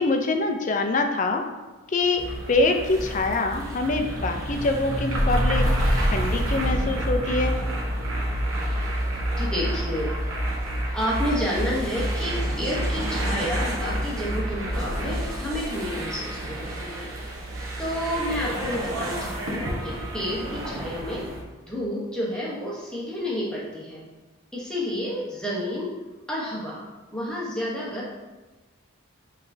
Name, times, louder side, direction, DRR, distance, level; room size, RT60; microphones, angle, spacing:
voice 1, 0.0-1.4 1.9-2.2 2.5-7.6, left 2 dB, 35° left, 5 dB, 0.4 m, -24 dB
sound 1, 2.2-21.4, equal, 80° right, 0.9 m, -28 dB
voice 2, 9.4-10.1 10.9-17.1 17.8-21.3 21.7-24.0 24.5-25.9 26.3-26.9 27.1-28.1, equal, 5° left, -5 dB, 0.8 m, -30 dB
5.7 x 3.2 x 2.6 m, 1.2 s
head